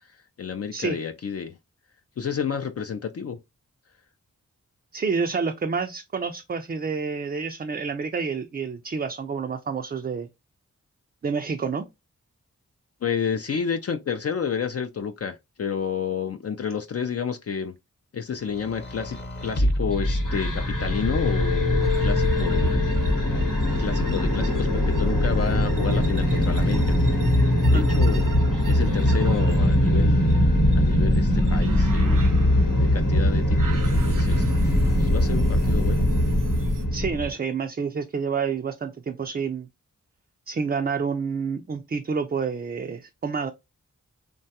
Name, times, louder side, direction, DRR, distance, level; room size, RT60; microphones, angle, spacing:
voice 1, 0.4-1.6 2.2-3.4 13.0-17.7 18.1-22.8 23.8-27.0 27.7-28.3 28.7-30.4 30.8-32.3 32.8-34.4 35.0-36.1, left 6 dB, 50° left, 0.4 m, -30 dB
voice 2, 4.9-10.3 11.2-11.8 27.7-27.9 36.9-39.7 40.5-43.5, right 5 dB, 30° right, 0.4 m, -28 dB
sound 1, 18.4-21.1 22.0-23.0, equal, 35° left, 0.9 m, -29 dB
sound 2, 19.9-37.3, left 1 dB, 75° left, 0.9 m, -21 dB
sound 3, 21.8-36.8, right 4 dB, 75° right, 0.6 m, -38 dB
3.0 x 2.2 x 2.7 m
cardioid pair, 45°, 32 cm